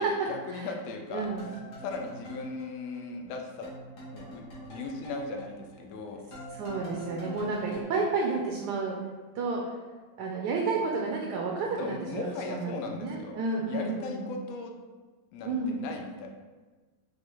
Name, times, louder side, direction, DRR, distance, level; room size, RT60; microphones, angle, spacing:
voice 1, 0.0-1.3 1.8-3.7 4.1-6.3 11.8-13.3 13.7-14.7 15.3-16.3, left 3 dB, 85° left, 3 dB, 0.7 m, -38 dB
voice 2, 1.1-1.5 6.5-9.0 9.3-9.6 10.2-14.3 15.4-15.8, right 4 dB, 70° right, -1 dB, 1.0 m, -31 dB
sound 1, 1.2-3.4 3.6-7.8, equal, 65° left, 1.6 m, -45 dB
5.3 x 2.4 x 3.0 m, 1.3 s
omnidirectional pair, 2.1 m